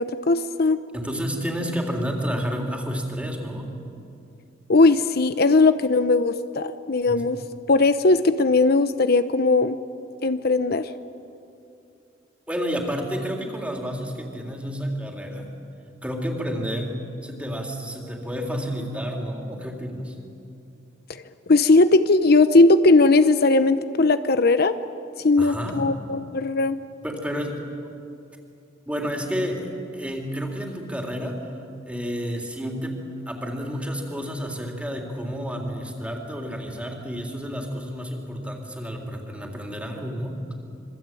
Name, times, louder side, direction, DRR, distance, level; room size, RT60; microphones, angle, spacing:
voice 1, 0.0-0.8 4.7-7.4 7.7-9.8 10.2-10.9 21.1-21.2 21.5-24.8 25.2-26.8, left 3 dB, 55° left, 10 dB, 0.8 m, -18 dB
voice 2, 0.9-3.7 7.1-7.2 12.5-15.5 16.0-20.2 25.4-25.8 27.0-27.6 28.9-31.5 31.9-40.4, equal, 5° right, 1 dB, 3.6 m, -30 dB
26.5 x 24.0 x 9.2 m, 2.6 s
head